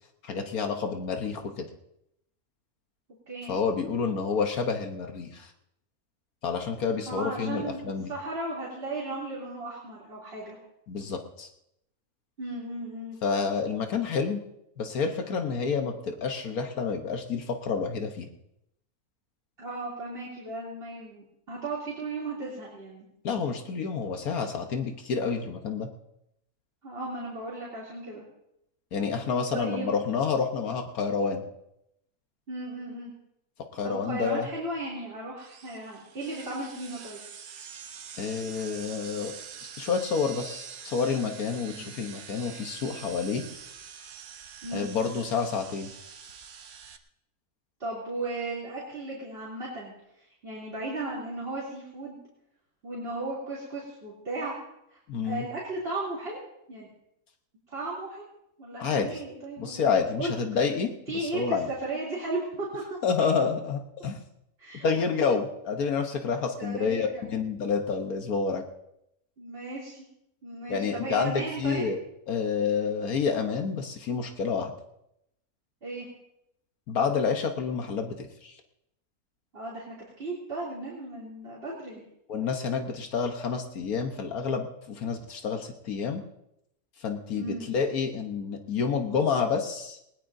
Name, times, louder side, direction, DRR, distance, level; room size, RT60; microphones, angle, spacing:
voice 1, 0.2-1.7 3.5-5.5 6.4-8.1 10.9-11.5 13.2-14.4 14.8-18.3 23.2-25.9 28.9-31.4 33.7-34.5 38.2-39.3 39.8-43.4 44.7-45.9 55.1-55.4 58.8-59.2 59.6-61.7 63.0-64.2 64.8-68.6 70.7-72.0 72.3-74.7 76.9-78.5 82.3-86.2 87.0-90.0, left 5 dB, 75° left, 5 dB, 1.6 m, -29 dB
voice 2, 7.1-10.6 12.4-13.2 19.6-23.0 26.8-28.2 29.5-30.1 32.5-33.1 33.8-37.2 41.6-41.9 44.6-44.9 47.8-52.2 52.8-54.5 54.9-55.0 55.2-56.4 56.7-56.9 57.7-58.2 58.6-60.3 61.1-63.0 64.6-65.0 65.2-65.4 66.6-67.2 69.4-70.0 70.4-71.9 75.8-76.1 79.5-82.0 87.3-87.7, right 2 dB, 40° right, -6 dB, 3.3 m, -35 dB
sound 1, 35.4-47.0, right 7 dB, 70° right, 1.3 m, -45 dB
20.0 x 19.0 x 2.7 m, 0.81 s
omnidirectional pair, 1.6 m